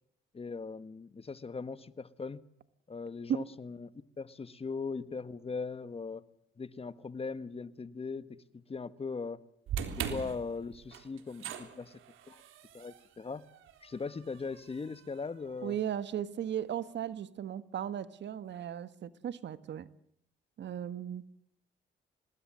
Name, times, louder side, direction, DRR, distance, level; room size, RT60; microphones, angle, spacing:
voice 1, 0.3-2.4 2.9-3.9 4.2-6.2 6.6-9.4 10.0-12.0 12.3-12.4 12.7-13.4 13.8-15.8, left 4 dB, 30° left, 1.6 m, -39 dB
sound 1, 9.7-15.9, right 8 dB, 85° right, 3.8 m, -42 dB
voice 2, 15.6-19.9 20.6-21.3, right 9 dB, 65° right, 1.5 m, -36 dB
26.5 x 20.5 x 7.7 m
cardioid pair, 90°, 20 cm